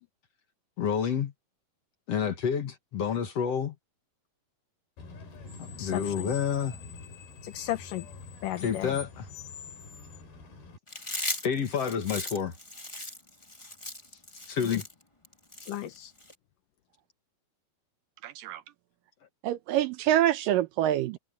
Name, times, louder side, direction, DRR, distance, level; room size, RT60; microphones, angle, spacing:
voice 1, 0.8-1.3 2.1-3.8 5.6-6.8 8.6-9.3 11.4-12.5 14.5-14.9, left 7 dB, 50° left, 2.2 m, -29 dB
Screech, 5.0-10.8, left 5 dB, 85° left, 7.6 m, -44 dB
voice 2, 5.8-6.3 7.4-8.1 8.4-8.9 14.7-14.8 15.7-16.1, left 13 dB, 70° left, 2.4 m, -34 dB
Chewing mastication, 10.9-16.3, left 1 dB, 10° left, 1.5 m, -38 dB
voice 3, 18.2-18.6 19.4-21.2, right 12 dB, 80° right, 2.2 m, -26 dB
omnidirectional pair, 4.3 m